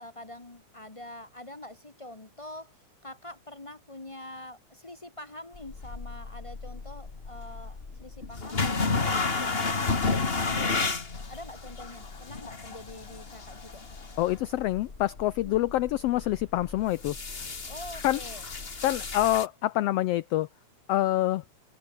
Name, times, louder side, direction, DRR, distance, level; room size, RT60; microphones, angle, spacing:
voice 1, 0.0-13.8 15.4-15.7 17.7-18.4, left 1 dB, 40° left, 0.4 m, -45 dB
sound 1, 5.5-19.5, left 4 dB, 25° left, 1.6 m, -32 dB
voice 2, 14.2-17.2 18.0-18.2 18.8-20.5 20.9-21.4, left 15 dB, 90° left, 1.3 m, -26 dB
omnidirectional pair, 3.5 m